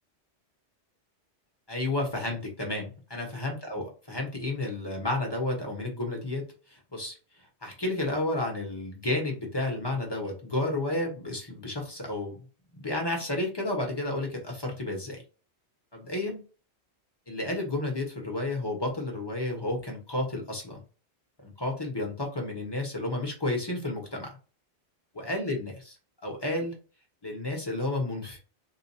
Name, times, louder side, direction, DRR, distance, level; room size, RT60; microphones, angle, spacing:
voice 1, 1.7-6.4 6.7-7.1 7.6-12.4 12.7-15.2 15.9-16.4 17.3-20.8 21.4-24.3 25.1-26.0 26.2-26.8 27.2-28.4, left 2 dB, 25° left, 1 dB, 1.1 m, -31 dB
3.9 x 2.5 x 2.7 m, 0.35 s
omnidirectional pair, 1.1 m